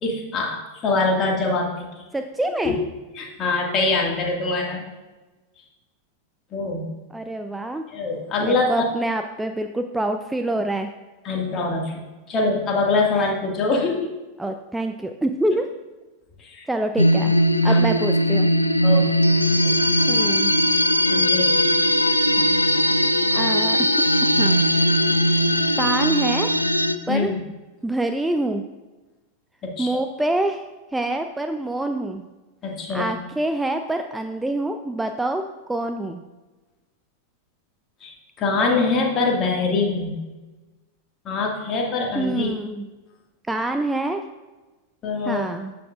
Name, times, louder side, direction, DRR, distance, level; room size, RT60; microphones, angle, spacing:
voice 1, 0.0-2.0 2.6-2.8 3.1-4.9 6.5-6.9 7.9-8.8 11.2-14.1 16.4-16.7 17.6-17.8 18.8-19.1 19.6-19.8 21.1-21.6 22.4-22.5 27.1-27.4 29.6-30.0 32.6-33.1 38.0-40.2 41.3-42.5 45.0-45.4, left 3 dB, 30° left, 0 dB, 2.0 m, -24 dB
voice 2, 2.1-2.8 7.1-7.8 8.4-10.9 14.4-15.7 16.7-17.3 17.6-18.5 20.1-20.5 23.3-23.9 24.4-24.6 25.8-26.5 27.1-27.3 27.8-28.6 29.8-30.6 30.9-32.2 32.9-35.4 35.7-36.2 42.1-42.9 43.5-44.2 45.3-45.7, right 2 dB, 5° right, 6 dB, 0.5 m, -26 dB
sound 1, 17.0-27.0, equal, 85° left, 0.5 m, -19 dB
12.5 x 8.4 x 2.5 m, 1.2 s
figure-of-eight pair, 90°, 0 cm